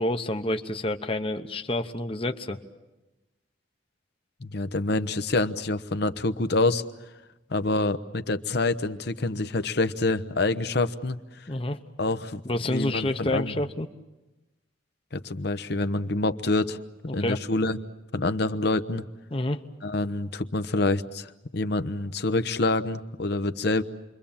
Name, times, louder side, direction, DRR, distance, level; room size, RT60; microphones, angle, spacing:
voice 1, 0.0-2.6 11.5-11.8 12.4-13.9 17.1-17.4 19.3-19.6, left 1 dB, 30° left, 6 dB, 0.9 m, -28 dB
voice 2, 4.4-6.8 7.5-11.2 12.0-12.4 12.7-13.6 15.1-16.8 17.1-17.8 18.1-19.0 19.8-23.8, left 2 dB, 60° left, 11 dB, 0.9 m, -26 dB
28.5 x 23.0 x 7.2 m, 1.0 s
head